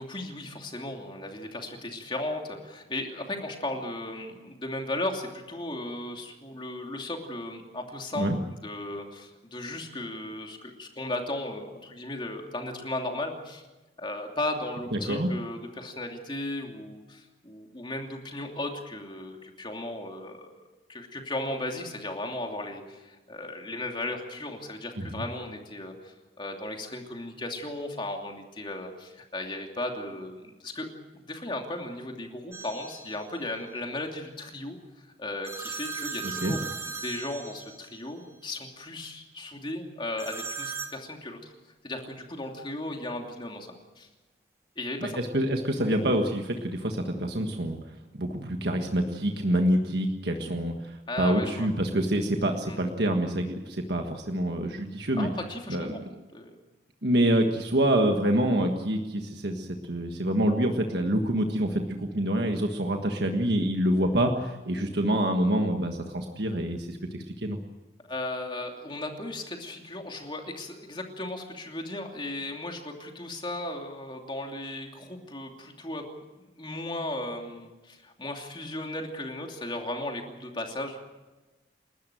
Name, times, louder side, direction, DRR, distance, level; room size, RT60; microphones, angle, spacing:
voice 1, 0.0-13.6 14.0-20.6 20.9-30.9 31.1-36.6 37.0-41.5 41.8-44.1 44.8-45.2 51.1-51.7 52.7-52.8 55.2-56.0 56.3-56.5 68.1-76.0 76.4-81.1, left 1 dB, 25° left, 2 dB, 2.9 m, -36 dB
sound 1, 32.5-33.3 35.4-38.1 40.2-41.0, right 5 dB, 15° right, 1.2 m, -37 dB
voice 2, 45.0-47.8 48.1-55.3 55.7-56.1 57.0-67.6, right 1 dB, 60° right, 4 dB, 1.5 m, -26 dB
29.5 x 13.0 x 9.1 m, 1.2 s
head